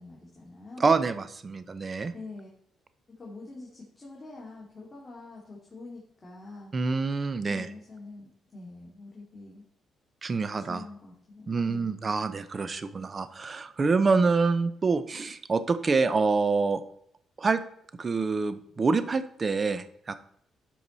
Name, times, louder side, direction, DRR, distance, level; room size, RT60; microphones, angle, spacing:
voice 1, 0.0-0.9 2.1-2.5 3.1-6.7 7.3-9.6 10.5-11.9, left 3 dB, 25° left, -5 dB, 2.5 m, -45 dB
voice 2, 0.8-2.1 6.7-7.7 10.2-10.8 11.5-16.8 17.4-17.6 18.0-20.2, right 4 dB, 35° right, 12 dB, 0.7 m, -26 dB
12.0 x 4.7 x 4.0 m, 0.68 s
cardioid pair, 90°, 0 cm